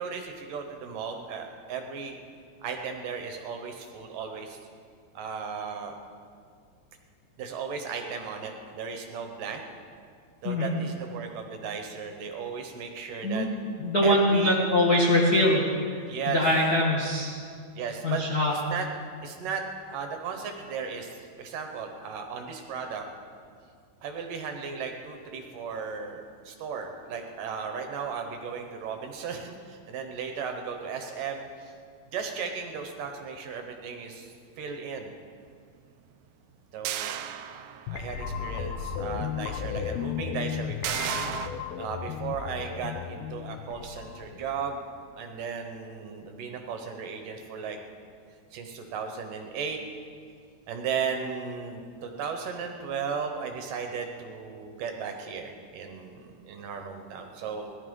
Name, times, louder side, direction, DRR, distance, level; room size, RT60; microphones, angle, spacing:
voice 1, 0.0-2.2 2.6-4.6 5.1-6.0 7.4-9.6 10.4-13.5 14.0-14.6 16.1-16.5 17.7-18.2 18.5-18.9 19.2-23.1 24.0-31.7 32.1-35.1 36.7-37.2 37.9-41.2 41.8-44.9 45.2-47.8 48.5-49.8 50.7-57.8, right 6 dB, 70° right, 5 dB, 2.5 m, -35 dB
voice 2, 13.8-15.6 16.3-17.4 18.0-18.5, left 1 dB, 65° left, -3 dB, 0.9 m, -23 dB
sound 1, 36.8-38.1 38.6-38.7 40.8-41.5, right 11 dB, 85° right, 1.9 m, -33 dB
sound 2, 37.9-44.8, left 8 dB, 85° left, 2.5 m, -35 dB
17.5 x 12.5 x 5.4 m, 2.1 s
omnidirectional pair, 4.4 m